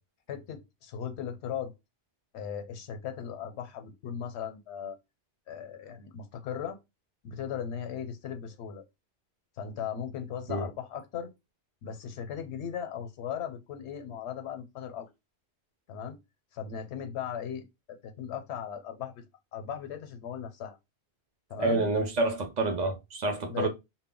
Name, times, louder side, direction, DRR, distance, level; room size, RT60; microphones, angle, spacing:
voice 1, 0.3-1.7 2.3-5.0 5.5-6.8 7.2-8.8 9.6-11.3 11.8-15.1 15.9-16.2 16.5-19.2 19.5-20.8 21.5-21.8 23.5-23.7, left 8 dB, 80° left, 0.8 m, -37 dB
voice 2, 21.6-23.7, right 2 dB, 55° right, 0.5 m, -28 dB
2.1 x 2.1 x 3.6 m
omnidirectional pair, 1.1 m